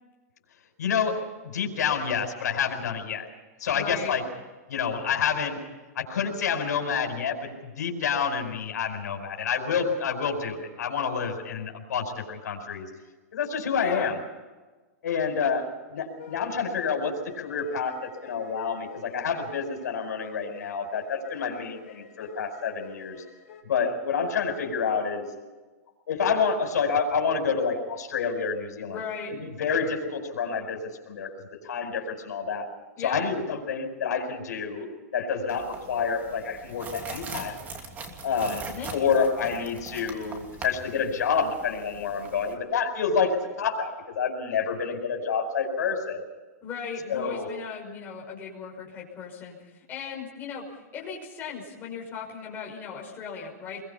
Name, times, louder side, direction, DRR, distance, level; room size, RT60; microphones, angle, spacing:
voice 1, 0.8-1.1 1.5-3.3 3.6-4.2 4.7-5.6 6.0-12.9 13.3-14.2 15.0-15.6 15.9-17.9 18.2-23.2 23.7-25.3 26.1-29.0 29.3-30.8 31.1-31.3 31.6-32.7 33.0-34.9 35.1-37.6 38.2-38.6 38.9-46.2 47.1-47.5, left 6 dB, 90° left, 3 dB, 5.2 m, -28 dB
voice 2, 3.7-4.2 13.7-14.2 28.8-29.3 33.0-33.2 38.6-38.9 46.6-49.6 49.9-53.8, left 6 dB, 20° left, -2 dB, 5.9 m, -37 dB
sound 1, 16.0-23.6, left 8 dB, 55° left, 4.2 m, -49 dB
sound 2, 35.5-42.5, right 3 dB, 20° right, 2.8 m, -41 dB
25.0 x 22.5 x 5.7 m, 1.2 s
supercardioid pair, 155°, 9 cm